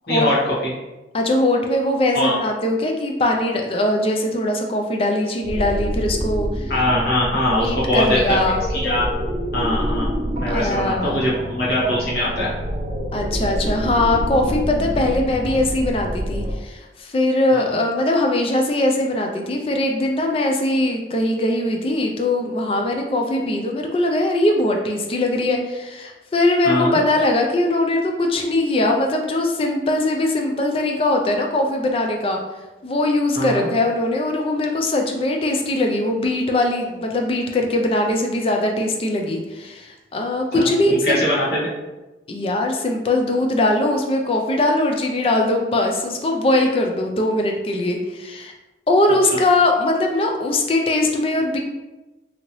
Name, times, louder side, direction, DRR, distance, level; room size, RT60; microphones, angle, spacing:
voice 1, 1.1-6.7 7.6-8.6 10.5-11.2 13.1-32.4 32.8-41.2 42.3-48.5 48.9-51.6, left 1 dB, 30° left, 2 dB, 0.3 m, -21 dB
sound 1, 5.4-16.5, equal, 35° right, 0.5 m, -27 dB
voice 2, 6.7-8.4 8.7-9.1 9.5-10.1 10.3-12.5 17.5-17.6 26.6-27.0 33.3-33.7 40.5-41.7, left 1 dB, 60° left, -7 dB, 1.2 m, -21 dB
2.8 x 2.7 x 2.9 m, 1.1 s
head